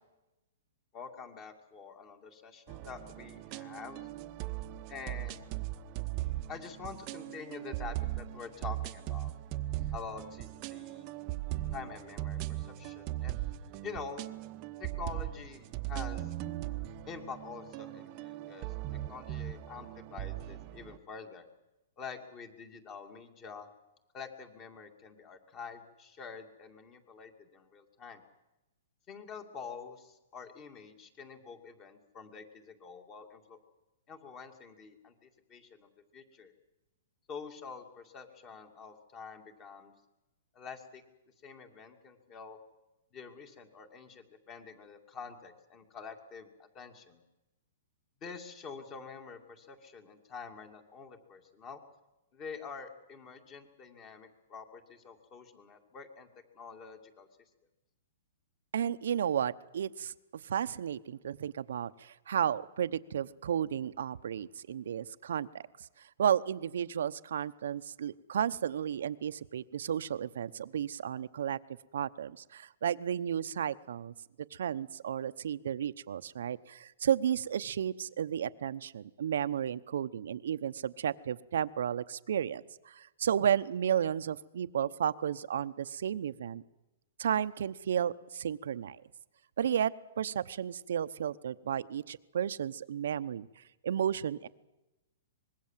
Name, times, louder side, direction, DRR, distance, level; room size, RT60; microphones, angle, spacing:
voice 1, 0.9-4.1 4.9-5.4 6.5-9.3 9.9-11.1 11.7-13.4 13.8-14.2 14.8-16.3 17.1-18.7 19.1-21.5 22.0-23.7 24.1-28.2 29.1-33.6 34.1-36.5 37.3-39.9 40.5-41.0 41.4-42.6 43.1-47.2 48.2-51.8 52.3-56.3 56.5-57.3, left 5 dB, 25° left, 7 dB, 2.5 m, -46 dB
sound 1, 2.7-21.0, right 15 dB, 30° right, 1.0 m, -39 dB
voice 2, 58.7-65.6 66.2-71.6 71.9-74.1 74.5-86.6 87.2-89.0 89.6-94.5, right 9 dB, 70° right, 13 dB, 0.9 m, -33 dB
25.0 x 21.0 x 7.5 m, 0.98 s
hypercardioid pair, 160°, 0 cm